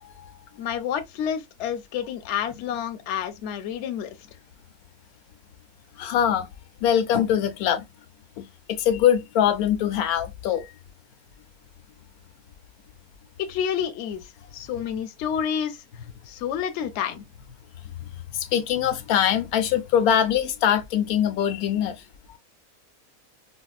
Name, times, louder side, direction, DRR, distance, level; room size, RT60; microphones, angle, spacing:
voice 1, 0.6-4.2 13.4-15.8 16.3-17.2, left 8 dB, 60° left, 0.8 m, -29 dB
voice 2, 6.0-6.5 6.8-7.8 8.4-10.6 18.3-21.9, left 9 dB, 90° left, 1.1 m, -22 dB
4.7 x 2.0 x 2.3 m
omnidirectional pair, 1.5 m